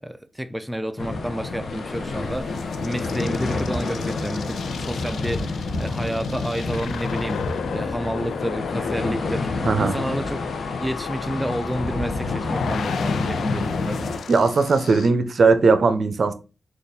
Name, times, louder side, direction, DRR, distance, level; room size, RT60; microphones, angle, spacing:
voice 1, 0.0-7.4 7.7-10.5 10.8-14.0, equal, 5° right, 0.4 m, -30 dB
sound 1, 1.0-14.2, left 3 dB, 70° left, 0.7 m, -28 dB
sound 2, 1.7-15.1, left 6 dB, 90° left, 0.3 m, -35 dB
voice 2, 14.3-16.3, right 4 dB, 60° right, 0.5 m, -18 dB
4.1 x 2.4 x 3.4 m
cardioid pair, 60°, 0 cm